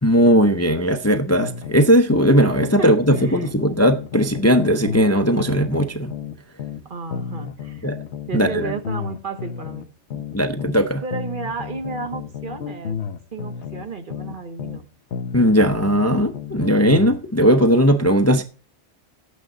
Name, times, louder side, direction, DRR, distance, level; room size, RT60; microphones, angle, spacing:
voice 1, 0.0-6.1 7.8-8.0 8.3-8.7 10.3-11.0 15.3-18.4, equal, 15° left, 0.6 m, -18 dB
sound 1, 1.4-2.8 3.1-6.8 7.1-10.8 11.1-14.8 15.1-17.2, left 7 dB, 70° left, 1.0 m, -32 dB
voice 2, 3.2-3.8 6.8-7.9 8.3-9.9 11.0-13.0 13.3-14.9, right 4 dB, 50° right, 1.2 m, -33 dB
11.5 x 8.9 x 3.8 m
omnidirectional pair, 1.2 m